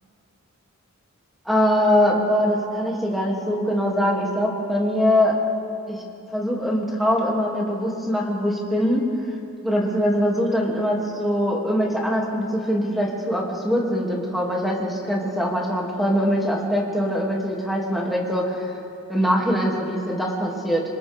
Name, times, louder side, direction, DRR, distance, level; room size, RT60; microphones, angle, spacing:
voice 1, 1.4-5.3 5.9-6.0 6.3-9.0 9.6-18.7 19.1-20.8, equal, ahead, -3 dB, 2.9 m, -22 dB
27.0 x 26.5 x 3.8 m, 2.7 s
head